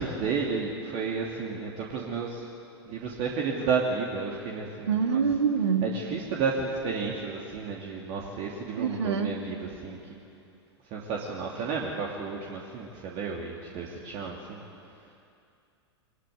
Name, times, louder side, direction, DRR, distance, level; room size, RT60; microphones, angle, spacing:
voice 1, 0.0-2.4 2.8-5.2 5.8-10.1 10.9-14.6, right 5 dB, 40° right, -2 dB, 2.9 m, -32 dB
voice 2, 4.9-5.9 8.8-9.3, right 6 dB, 75° right, 5 dB, 2.4 m, -25 dB
23.0 x 20.0 x 9.6 m, 2.5 s
figure-of-eight pair, 100°, 14 cm